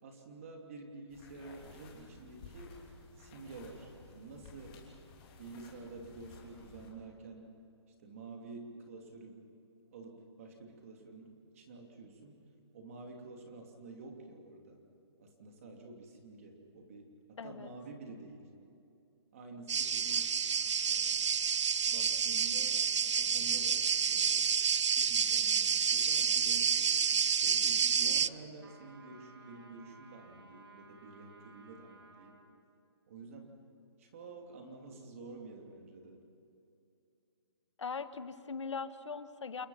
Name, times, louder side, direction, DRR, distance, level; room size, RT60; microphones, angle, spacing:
voice 1, 0.0-2.8 3.2-4.8 5.4-7.5 8.0-9.4 9.9-12.4 12.7-14.8 15.2-18.5 19.3-20.3 20.8-21.3 21.8-22.8 23.2-24.5 24.9-27.0 27.4-32.4 33.1-33.5 34.0-36.2, right 3 dB, 30° right, 2 dB, 2.9 m, -49 dB
sound 1, 1.1-6.9, left 4 dB, 20° left, 3.0 m, -55 dB
voice 2, 17.4-17.7 37.8-39.7, left 5 dB, 80° left, 11 dB, 1.4 m, -40 dB
sound 2, 19.7-28.3, right 7 dB, 85° right, 0.6 m, -29 dB
sound 3, 28.6-32.5, right 3 dB, 55° right, 3.5 m, -58 dB
29.0 x 21.0 x 5.8 m, 2.7 s
hypercardioid pair, 175°, 15 cm